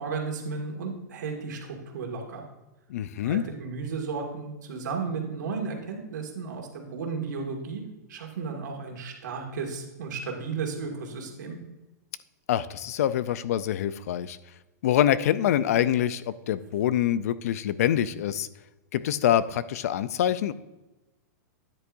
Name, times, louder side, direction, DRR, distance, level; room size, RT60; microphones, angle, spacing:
voice 1, 0.0-2.4 3.2-7.8 8.1-11.6, right 5 dB, 90° right, 2 dB, 2.0 m, -34 dB
voice 2, 2.9-3.4 12.5-14.4 14.8-18.5 18.9-20.5, left 11 dB, 55° left, 16 dB, 0.4 m, -25 dB
9.8 x 8.2 x 2.6 m, 1.0 s
supercardioid pair, 175°, 9 cm